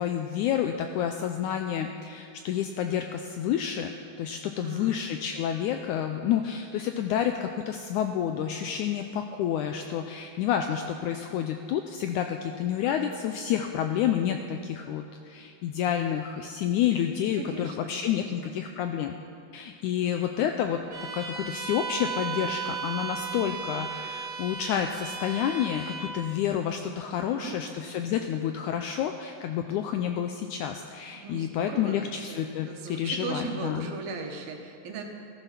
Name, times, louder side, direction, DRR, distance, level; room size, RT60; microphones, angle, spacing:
voice 1, 0.0-19.1 19.5-20.8 21.1-33.9, left 9 dB, 90° left, 6 dB, 1.7 m, -29 dB
voice 2, 4.6-5.0 17.4-18.5 27.2-27.6 31.2-35.0, right 4 dB, 90° right, 2 dB, 3.4 m, -38 dB
Bowed string instrument, 20.9-26.2, right 5 dB, 35° right, 2.7 m, -35 dB
14.5 x 14.0 x 5.9 m, 2.5 s
omnidirectional pair, 4.1 m